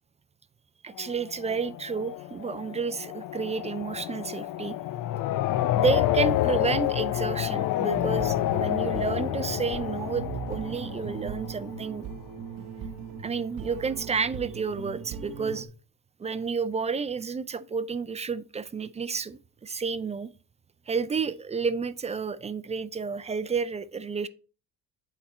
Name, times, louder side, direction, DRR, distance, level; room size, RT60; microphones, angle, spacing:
voice 1, 0.8-4.8 5.7-12.1 13.2-15.7 16.2-20.3 20.9-24.3, right 5 dB, 20° right, 0.3 m, -31 dB
sound 1, 1.0-11.8, left 13 dB, 75° left, 0.6 m, -29 dB
sound 2, 7.9-15.7, right 7 dB, 80° right, 0.9 m, -39 dB
8.1 x 4.2 x 4.1 m
cardioid pair, 100°, 32 cm